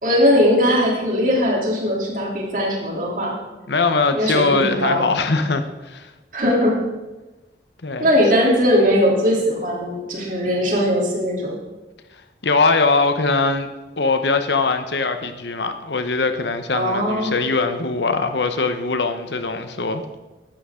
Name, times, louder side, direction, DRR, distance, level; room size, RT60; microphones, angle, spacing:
voice 1, 0.0-3.4 4.1-5.0 6.3-6.8 8.0-11.5 16.7-17.3, equal, 45° right, -3 dB, 3.3 m, -19 dB
voice 2, 3.7-6.1 7.8-8.1 12.4-13.7 14.0-20.0, left 3 dB, 75° left, 8 dB, 1.0 m, -21 dB
15.5 x 11.5 x 3.8 m, 1.1 s
head